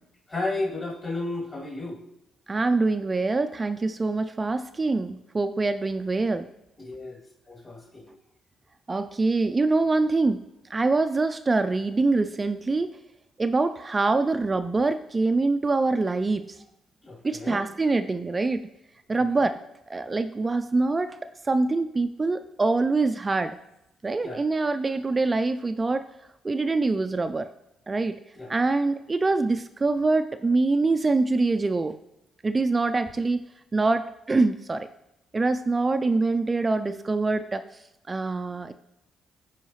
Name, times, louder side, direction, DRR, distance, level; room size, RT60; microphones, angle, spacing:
voice 1, 0.3-2.0 6.8-7.2 7.5-8.2 17.0-17.7 19.1-19.5 24.2-24.4 28.3-28.5, left 2 dB, 35° left, -5 dB, 2.7 m, -33 dB
voice 2, 2.5-6.5 8.9-10.4 10.7-12.9 13.4-16.6 17.2-18.6 19.1-19.6 19.9-23.6 24.0-26.1 26.4-27.5 27.9-28.2 28.5-32.0 32.4-33.4 33.7-34.9 35.3-37.6 38.1-38.7, right 3 dB, 25° right, 9 dB, 0.4 m, -24 dB
14.0 x 4.9 x 3.1 m, 0.86 s
cardioid pair, 90°, 0 cm